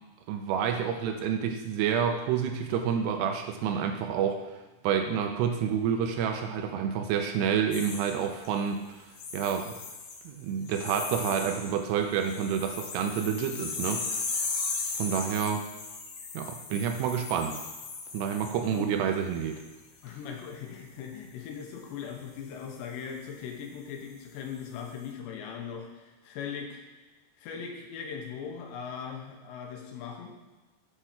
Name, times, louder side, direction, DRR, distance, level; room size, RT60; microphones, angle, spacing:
voice 1, 0.3-4.4 4.8-9.0 9.3-9.7 10.3-14.1 15.0-15.6 16.3-17.6 18.1-19.6, right 8 dB, 85° right, 5 dB, 2.6 m, -29 dB
sound 1, 7.7-8.6 9.1-10.3 10.6-11.7 12.0-18.8 19.3-19.6, left 4 dB, 70° left, 2.3 m, -37 dB
voice 2, 20.0-26.8 27.4-30.3, left 7 dB, 85° left, 2 dB, 3.2 m, -39 dB
8.2 x 5.9 x 4.3 m, 1.2 s
omnidirectional pair, 5.0 m